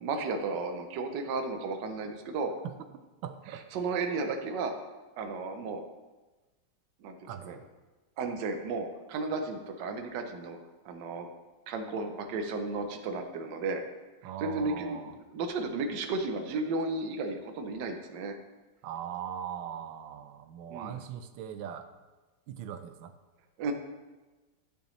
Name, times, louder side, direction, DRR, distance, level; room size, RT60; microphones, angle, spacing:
voice 1, 0.0-2.5 3.5-4.7 5.2-5.8 7.0-7.6 8.2-10.6 10.8-11.3 11.7-13.8 14.4-18.4 20.7-21.0 23.6-23.7, right 3 dB, 70° right, 5 dB, 1.4 m, -34 dB
voice 2, 3.2-3.6 7.3-7.6 14.2-15.1 18.8-21.9 22.5-23.1, right 9 dB, 85° right, 9 dB, 1.4 m, -40 dB
9.9 x 6.7 x 3.1 m, 1.2 s
omnidirectional pair, 2.1 m